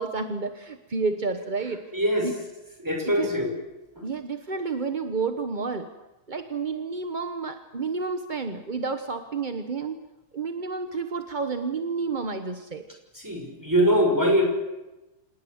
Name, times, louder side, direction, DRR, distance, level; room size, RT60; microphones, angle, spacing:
voice 1, 0.0-1.8 2.2-2.3 3.0-3.3 4.0-5.9 6.3-10.0 10.3-12.8, right 4 dB, 35° right, 8 dB, 0.8 m, -30 dB
voice 2, 1.9-2.3 2.8-3.5 4.0-4.1 13.1-14.4, equal, 10° right, 3 dB, 5.8 m, -23 dB
28.0 x 19.0 x 8.0 m, 1.0 s
omnidirectional pair, 2.3 m